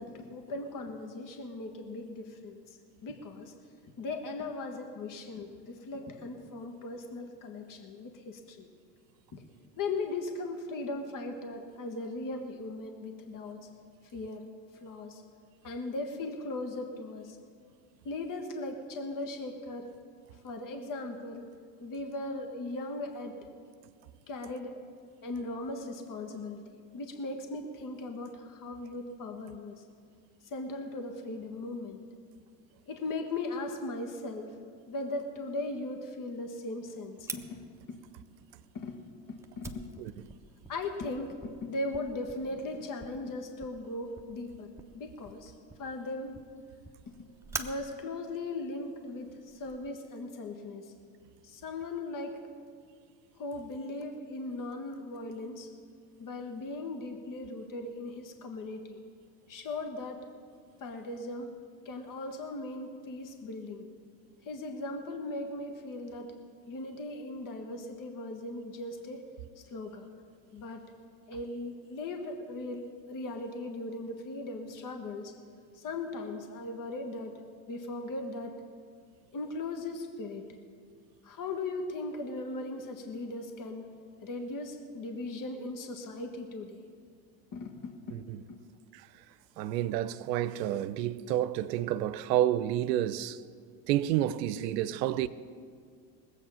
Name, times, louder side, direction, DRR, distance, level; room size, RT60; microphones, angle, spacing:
voice 1, 0.0-3.5 4.0-8.7 9.3-9.4 9.8-13.6 14.1-14.5 14.8-15.2 15.6-17.4 18.0-19.9 20.4-21.5 21.8-23.4 24.3-24.8 25.2-26.6 26.9-29.8 30.4-32.0 32.9-34.5 34.9-37.6 37.9-38.0 38.7-39.0 39.3-39.9 40.7-44.7 44.9-45.5 45.8-46.4 47.1-47.3 47.6-50.9 51.4-52.4 53.4-55.7 56.2-59.0 59.5-60.2 60.8-61.5 61.8-63.9 64.4-66.3 66.7-69.2 69.6-70.1 70.5-70.9 71.3-75.3 75.7-77.4 77.7-78.6 79.3-80.5 81.2-83.9 84.2-86.8 87.5-88.2 88.5-88.6, left 2 dB, 40° left, 1.7 m, -38 dB
Fire, 37.3-49.8, right 2 dB, 5° right, 1.0 m, -47 dB
voice 2, 89.6-93.4 93.9-95.3, right 12 dB, 75° right, 0.7 m, -29 dB
20.0 x 8.2 x 5.7 m
hypercardioid pair, 75°, 50 cm